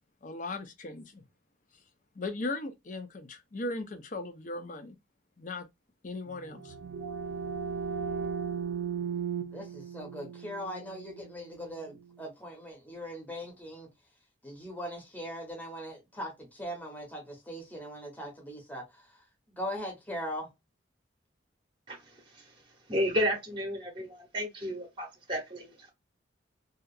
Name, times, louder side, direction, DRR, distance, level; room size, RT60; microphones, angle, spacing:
voice 1, 0.2-1.2 2.2-5.0 5.4-5.7 6.0-6.7, left 2 dB, 40° left, 0.5 m, -37 dB
sound 1, 6.3-11.9, right 6 dB, 65° right, 0.3 m, -36 dB
voice 2, 9.5-13.9 14.4-18.8 19.6-20.5, equal, 10° left, 0.8 m, -40 dB
voice 3, 22.9-25.9, equal, 25° right, 0.8 m, -32 dB
2.7 x 2.4 x 2.3 m
head